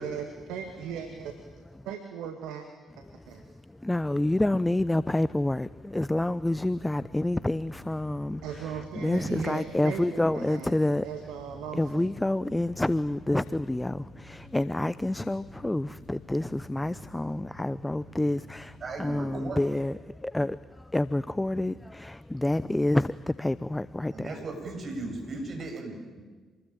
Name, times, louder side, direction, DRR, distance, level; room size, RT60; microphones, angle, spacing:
voice 1, 0.0-1.3 1.9-2.6 3.3-3.4 8.4-10.7 11.0-12.1, right 7 dB, 75° right, 5 dB, 2.2 m, -37 dB
voice 2, 3.1-3.4 3.8-11.1 11.7-24.3, left 1 dB, 15° left, 17 dB, 0.7 m, -28 dB
sound 1, 6.4-19.4, left 1 dB, 75° left, 2.7 m, -52 dB
voice 3, 18.8-19.8 24.1-26.2, right 2 dB, 50° right, 3 dB, 7.8 m, -37 dB
27.0 x 21.0 x 9.0 m, 1.4 s
hypercardioid pair, 45°, 0 cm